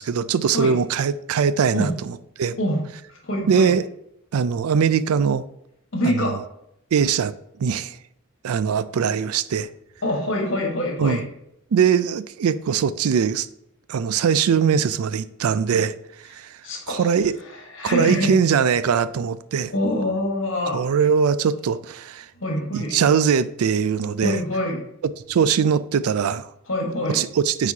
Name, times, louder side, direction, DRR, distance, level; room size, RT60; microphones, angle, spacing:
voice 1, 0.0-2.6 3.5-3.8 4.3-5.4 6.0-6.4 6.9-7.3 7.6-8.0 8.4-9.7 11.0-11.2 11.7-13.5 13.9-15.9 16.3-16.5 16.9-17.3 17.8-19.7 20.7-22.3 22.7-24.4 25.3-26.5 27.1-27.7, right 7 dB, 85° right, 0.4 m, -21 dB
voice 2, 3.1-3.7 5.9-6.4 10.0-11.2 16.6-17.1 17.5-18.3 19.7-20.8 22.4-23.0 24.2-24.8 26.7-27.2, left 1 dB, 60° left, 1.5 m, -25 dB
9.2 x 4.1 x 2.9 m
head